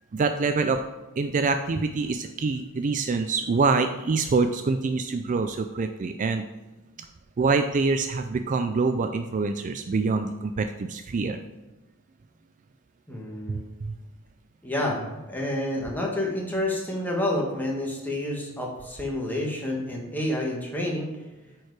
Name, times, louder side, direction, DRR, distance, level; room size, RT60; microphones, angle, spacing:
voice 1, 0.1-0.8 1.2-6.4 7.0-7.1 7.4-11.4 13.9-14.0, right 4 dB, 35° right, 7 dB, 0.4 m, -25 dB
voice 2, 13.1-13.6 14.6-21.1, left 1 dB, 10° left, -2 dB, 1.5 m, -29 dB
8.9 x 4.7 x 4.8 m, 1.1 s
head